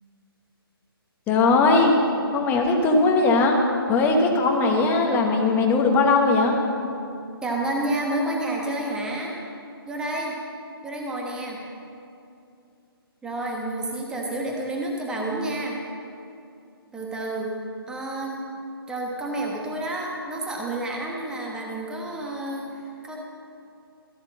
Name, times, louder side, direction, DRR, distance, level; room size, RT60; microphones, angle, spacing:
voice 1, 1.3-2.0 2.3-3.6 3.9-6.6, left 3 dB, 15° left, 2 dB, 1.2 m, -19 dB
voice 2, 7.4-9.4 9.9-10.4 10.8-11.6 13.2-15.8 16.9-18.4 18.9-23.2, right 1 dB, 5° right, -1 dB, 1.3 m, -30 dB
14.0 x 8.0 x 6.4 m, 2.6 s
figure-of-eight pair, 145°, 13 cm